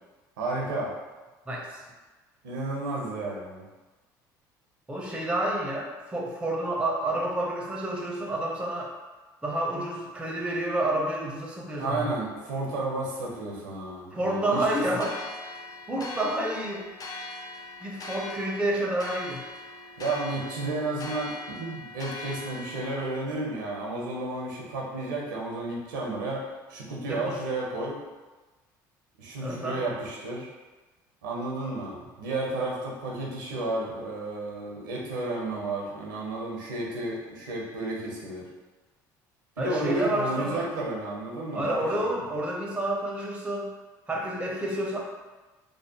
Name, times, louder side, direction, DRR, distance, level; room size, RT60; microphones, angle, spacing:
voice 1, 0.4-0.9 2.4-3.6 11.8-14.7 20.0-26.4 26.7-28.0 29.2-30.5 31.2-38.5 39.6-42.2, right 2 dB, 90° right, -3 dB, 0.6 m, -32 dB
voice 2, 1.5-1.8 4.9-8.9 9.4-12.1 14.1-15.2 15.9-16.8 17.8-19.4 27.1-27.4 29.4-29.9 39.6-40.7 41.5-43.7 44.1-45.0, right 1 dB, 10° right, -1 dB, 0.6 m, -29 dB
sound 1, 15.0-23.2, left 2 dB, 40° left, 0.4 m, -40 dB
2.6 x 2.0 x 2.8 m, 1.2 s
hypercardioid pair, 65°, 10 cm